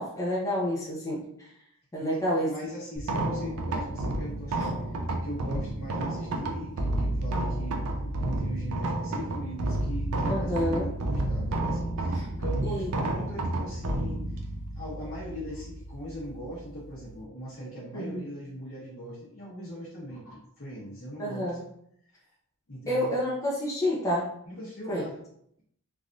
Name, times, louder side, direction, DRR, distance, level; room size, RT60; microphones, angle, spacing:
voice 1, 0.0-1.5 1.9-2.5 10.3-10.9 12.1-12.3 12.6-12.9 17.9-18.2 21.2-21.6 22.9-24.3 24.9-25.0, equal, 15° left, -5 dB, 0.6 m, -29 dB
voice 2, 2.0-7.8 8.2-14.2 14.7-21.6 22.7-23.2 24.4-25.2, equal, 65° left, -10 dB, 0.9 m, -40 dB
sound 1, 3.0-17.2, right 1 dB, 85° right, 0.5 m, -31 dB
3.3 x 2.5 x 2.4 m, 0.71 s
head